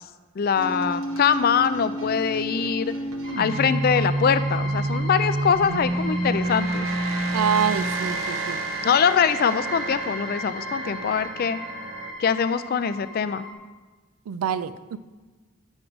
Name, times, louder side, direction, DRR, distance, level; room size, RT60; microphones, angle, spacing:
voice 1, 0.4-2.9 3.4-6.9 8.8-11.6 12.2-13.5, left 7 dB, 45° left, 13 dB, 0.3 m, -23 dB
sound 1, 0.6-12.1, right 2 dB, 65° right, 0.8 m, -29 dB
sound 2, 3.2-13.5, left 1 dB, 5° left, 1.0 m, -37 dB
voice 2, 7.3-8.6 14.3-15.0, right 8 dB, 90° right, 15 dB, 0.4 m, -26 dB
7.2 x 6.1 x 5.0 m, 1.3 s
head